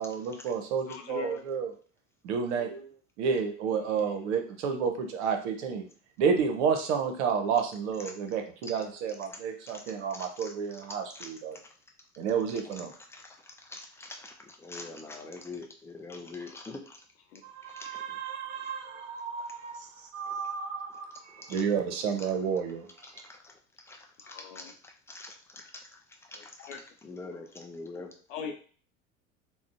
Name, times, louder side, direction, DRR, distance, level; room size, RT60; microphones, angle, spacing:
voice 1, 0.0-1.7 2.2-2.9 3.2-5.9 6.2-11.6 12.2-12.9 17.4-22.9, right 6 dB, 60° right, 5 dB, 0.7 m, -31 dB
voice 2, 0.9-1.4 3.9-4.2 17.3-17.4 24.2-24.7 26.3-26.8 28.3-28.5, left 6 dB, 70° left, 4 dB, 0.7 m, -41 dB
voice 3, 10.1-10.5 11.1-11.3 12.6-17.0 17.8-18.2 21.4-21.6 23.0-23.5 23.9-26.0 26.3-26.5 27.0-28.1, left 3 dB, 5° left, 1 dB, 0.4 m, -45 dB
3.6 x 2.1 x 2.5 m, 0.42 s
figure-of-eight pair, 75°, 39 cm